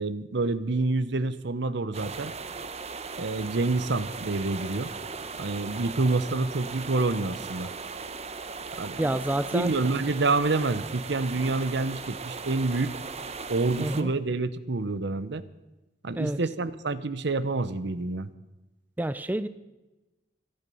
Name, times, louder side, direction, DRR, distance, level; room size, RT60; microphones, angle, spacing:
voice 1, 0.0-2.3 3.2-4.9 5.4-7.7 8.8-9.2 9.5-13.0 13.5-15.4 16.0-18.3, right 3 dB, 70° right, 15 dB, 0.8 m, -27 dB
sound 1, 1.9-14.0, right 4 dB, 35° right, 0.9 m, -38 dB
voice 2, 9.0-9.7 13.8-14.1 16.2-16.4 19.0-19.5, right 1 dB, 10° right, 13 dB, 0.4 m, -28 dB
25.0 x 8.8 x 5.5 m, 1.1 s
head